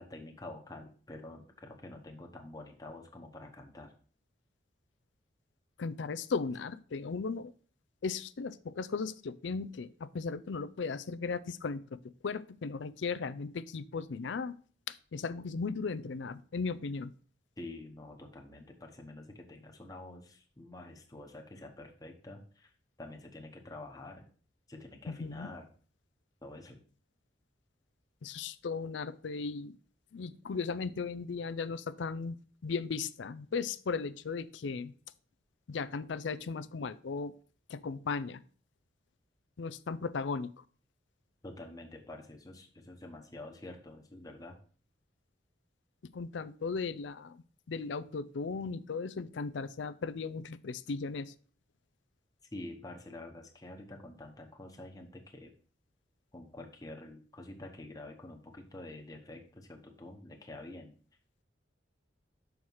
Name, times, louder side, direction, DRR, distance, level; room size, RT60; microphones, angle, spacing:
voice 1, 0.0-3.9 17.6-22.7 23.0-24.3 24.7-25.7 26.4-26.8 41.4-44.6 52.5-55.5 56.3-60.9, left 2 dB, 20° left, 2 dB, 1.0 m, -47 dB
voice 2, 5.8-7.5 8.0-12.0 12.2-14.5 14.9-17.1 25.1-25.5 28.2-29.7 30.1-34.9 35.7-37.3 37.7-38.4 39.6-40.6 46.1-51.3, left 4 dB, 75° left, 14 dB, 0.5 m, -36 dB
6.3 x 4.7 x 5.4 m, 0.42 s
head